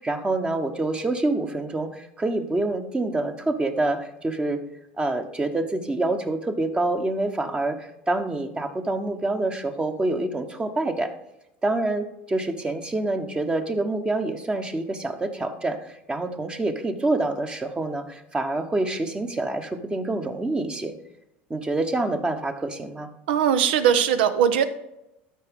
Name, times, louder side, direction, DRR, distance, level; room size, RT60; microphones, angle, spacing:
voice 1, 0.0-4.6 5.0-11.1 11.6-20.9 21.5-23.1, right 2 dB, 15° right, 7 dB, 1.0 m, -26 dB
voice 2, 23.3-24.6, right 8 dB, 85° right, 11 dB, 0.8 m, -20 dB
13.0 x 4.9 x 3.6 m, 0.86 s
supercardioid pair, 95°, 5 cm